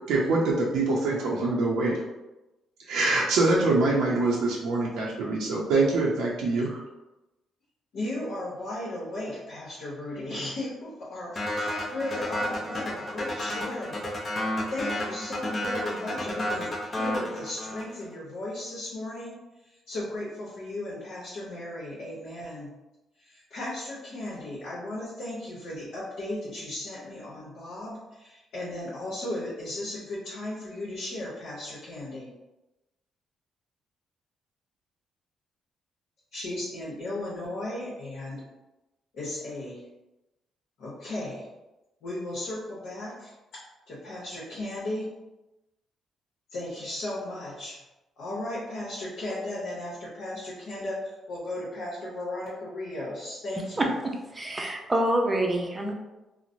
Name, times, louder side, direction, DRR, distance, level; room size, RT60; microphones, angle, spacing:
voice 1, 0.1-2.0 2.9-6.8, right 3 dB, 85° right, -4 dB, 0.5 m, -24 dB
voice 2, 7.9-14.0 14.7-19.4 19.6-22.7 23.2-32.3 36.3-38.4 39.1-39.8 40.8-41.5 42.0-43.3 43.9-45.1 46.5-47.8 48.2-54.0, left 1 dB, 75° left, -7 dB, 0.9 m, -36 dB
sound 1, 11.3-18.0, left 1 dB, 35° left, 0.6 m, -31 dB
voice 3, 53.8-55.9, right 1 dB, 20° right, 1 dB, 0.5 m, -27 dB
3.0 x 2.0 x 2.5 m, 1.0 s
cardioid pair, 90°, 0 cm